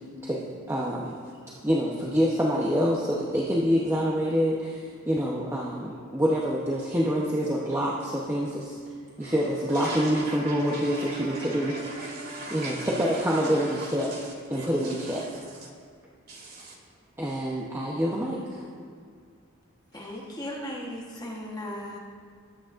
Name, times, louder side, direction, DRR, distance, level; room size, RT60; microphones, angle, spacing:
voice 1, 0.2-1.2 1.6-8.8 9.2-11.7 12.5-14.1 14.5-15.2 17.2-18.6, equal, 10° right, 0.9 m, -26 dB
voice 2, 9.2-14.2 14.5-15.2 16.3-16.7, right 2 dB, 45° right, 2.5 m, -39 dB
Wind instrument woodwind instrument, 9.5-13.8, equal, 70° right, 2.6 m, -46 dB
voice 3, 19.9-22.0, left 1 dB, 20° left, 1.2 m, -37 dB
20.0 x 9.1 x 2.6 m
head